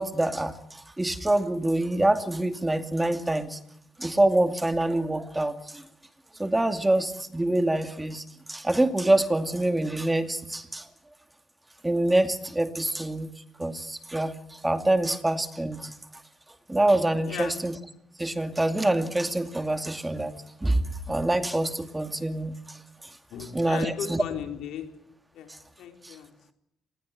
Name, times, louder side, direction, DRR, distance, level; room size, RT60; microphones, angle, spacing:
voice 1, 0.0-3.6 4.0-5.8 6.4-10.9 11.8-13.3 13.6-15.9 16.7-17.8 18.2-20.4 20.6-23.1 23.4-24.2 25.5-25.6 26.0-26.2, right 1 dB, 10° right, 2.4 m, -26 dB
voice 2, 17.3-17.6 23.3-24.9 25.3-25.5 25.8-26.5, left 9 dB, 85° left, 4.5 m, -36 dB
26.0 x 20.5 x 9.1 m
cardioid pair, 90°, 0 cm